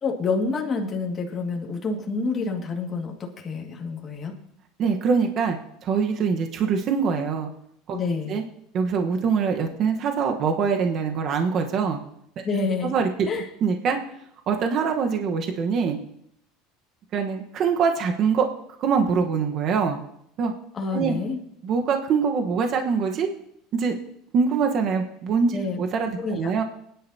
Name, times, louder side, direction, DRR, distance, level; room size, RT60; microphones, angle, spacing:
voice 1, 0.0-4.3 7.9-8.3 12.4-13.0 13.3-13.5 20.7-21.4 25.5-25.8 26.2-26.6, left 4 dB, 25° left, 0 dB, 2.0 m, -28 dB
voice 2, 4.8-7.5 7.9-8.4 8.7-12.0 12.9-13.3 13.6-14.0 14.5-16.0 17.1-18.5 18.8-20.0 20.4-20.5 20.9-21.2 21.6-23.3 23.7-24.0 24.3-26.6, right 5 dB, 45° right, 4 dB, 1.2 m, -24 dB
20.5 x 10.5 x 2.8 m, 0.72 s
supercardioid pair, 130°, 0 cm